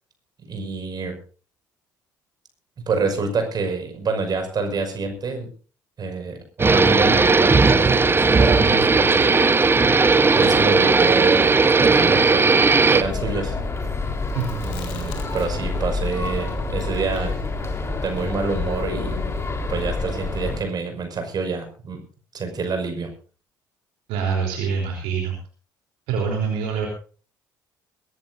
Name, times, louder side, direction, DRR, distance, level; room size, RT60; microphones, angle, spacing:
voice 1, 0.5-1.2 2.8-5.5 6.0-9.4 10.3-13.6 14.6-17.4 18.0-19.2 19.7-22.0 22.3-23.1, right 4 dB, 45° right, 5 dB, 5.7 m, -27 dB
sound 1, 6.6-13.0, right 4 dB, 25° right, 1.1 m, -16 dB
sound 2, 13.0-20.6, left 3 dB, 25° left, 4.0 m, -27 dB
Chewing mastication, 14.3-15.8 16.0-19.4, left 6 dB, 70° left, 3.6 m, -40 dB
voice 2, 24.1-25.3 26.1-26.9, right 6 dB, 70° right, 1 dB, 3.6 m, -25 dB
22.5 x 15.0 x 2.7 m, 0.39 s
hypercardioid pair, 50°, 10 cm